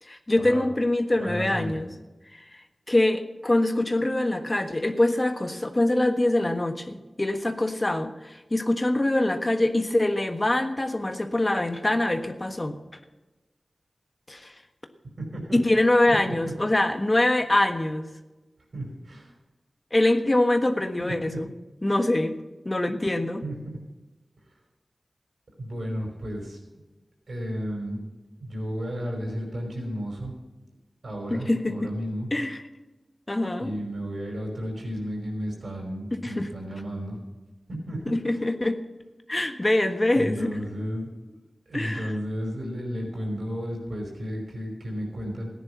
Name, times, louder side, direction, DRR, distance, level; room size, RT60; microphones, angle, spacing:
voice 1, 0.0-1.9 2.3-2.6 2.9-12.8 14.3-14.5 15.5-18.1 19.9-21.5 21.8-22.4 22.6-23.4 31.3-31.9 32.3-32.6 33.3-33.7 36.2-36.5 38.1-38.8 39.3-40.6 41.7-42.1, left 1 dB, 30° left, 7 dB, 1.4 m, -24 dB
voice 2, 1.2-1.8 15.2-15.9 16.3-16.5 18.7-19.3 21.0-21.4 23.4-23.8 25.6-26.8 27.3-28.0 28.4-30.3 31.0-32.3 33.6-37.2 37.7-38.5 40.1-41.1 41.7-45.5, equal, 75° right, 1 dB, 5.2 m, -33 dB
15.0 x 10.0 x 5.8 m, 1.1 s
wide cardioid pair, 55°, 0 cm